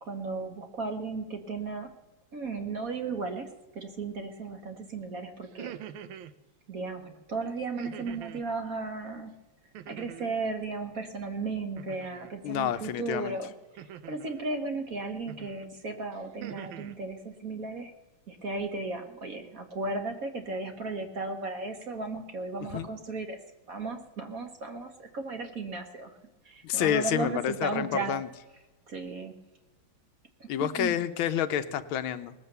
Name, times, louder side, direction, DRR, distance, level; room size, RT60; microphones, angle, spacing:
voice 1, 0.0-1.9 2.3-5.7 6.7-9.4 9.9-17.9 18.3-23.4 23.7-26.1 26.4-28.1 28.9-29.4 30.4-31.0, right 3 dB, 45° right, 6 dB, 1.5 m, -35 dB
sound 1, 5.4-6.3 7.8-8.5 9.7-10.4 11.8-12.3 13.8-14.4 15.3-15.6 16.1-17.0, right 10 dB, 80° right, 1.5 m, -44 dB
voice 2, 12.4-13.4 22.7-22.9 26.6-28.3 30.5-32.3, left 10 dB, 80° left, 11 dB, 1.5 m, -29 dB
19.5 x 7.4 x 6.7 m, 1.1 s
omnidirectional pair, 2.3 m